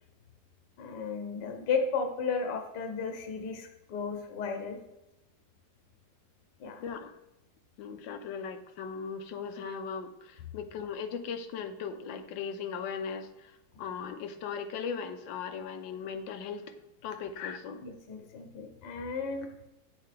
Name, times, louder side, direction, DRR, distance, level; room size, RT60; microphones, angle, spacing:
voice 1, 0.8-4.8 6.6-6.8 17.8-19.5, left 5 dB, 70° left, 4 dB, 1.5 m, -34 dB
voice 2, 6.8-7.2 7.8-17.8 18.2-18.3, left 6 dB, 85° left, 8 dB, 1.4 m, -38 dB
8.9 x 6.7 x 3.4 m, 0.92 s
omnidirectional pair, 2.0 m